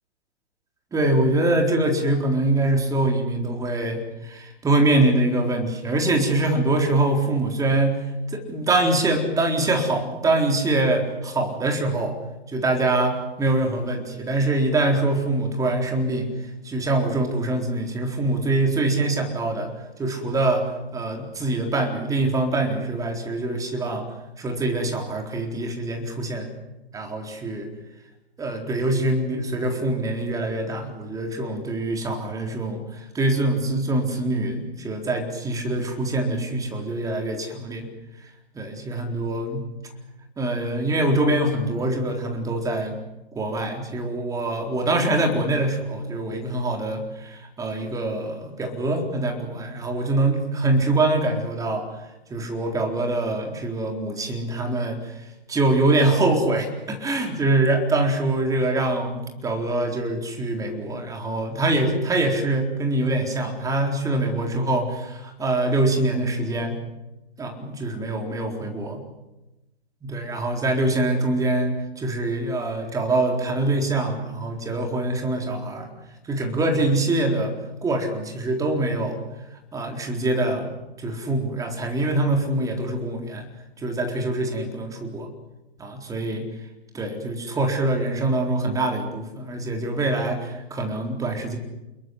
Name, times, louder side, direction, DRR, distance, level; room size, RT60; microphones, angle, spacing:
voice 1, 0.9-8.0 8.3-12.2 12.5-16.3 16.6-19.7 20.0-20.7 20.9-24.1 24.4-26.5 26.9-27.7 28.4-37.9 38.6-39.7 40.4-43.0 43.3-51.9 52.3-55.2 55.5-66.8 67.4-69.0 70.0-75.9 76.2-79.2 79.7-80.7 81.0-83.5 83.8-85.3 85.8-86.5 86.9-91.6, right 2 dB, 10° right, 2 dB, 4.1 m, -24 dB
28.0 x 22.0 x 8.0 m, 1.0 s
figure-of-eight pair, 125°, 32 cm